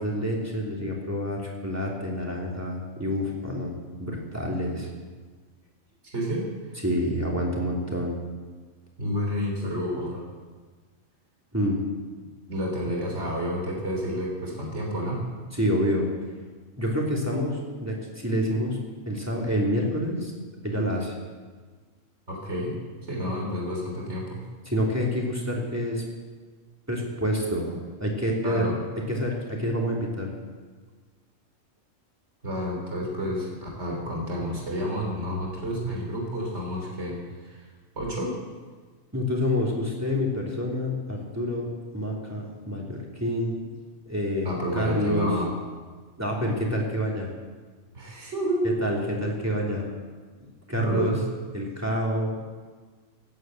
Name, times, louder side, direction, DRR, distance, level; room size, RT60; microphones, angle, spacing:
voice 1, 0.0-3.7 4.0-4.9 6.8-8.2 11.5-11.8 15.6-16.1 16.8-18.8 19.0-20.3 20.6-21.1 24.7-26.0 26.9-27.6 28.0-28.7 29.1-30.3 39.1-41.7 41.9-43.7 44.1-45.3 46.2-47.3 48.6-49.8 50.7-51.1 51.5-52.5, equal, 10° right, -3 dB, 3.2 m, -27 dB
voice 2, 6.1-6.5 9.0-10.2 12.5-15.2 22.3-22.8 23.1-24.4 28.4-28.8 32.4-37.7 38.0-38.4 44.4-45.5 47.9-48.7 50.7-51.2, equal, 60° right, -1 dB, 3.8 m, -30 dB
17.0 x 9.3 x 7.9 m, 1.4 s
omnidirectional pair, 1.4 m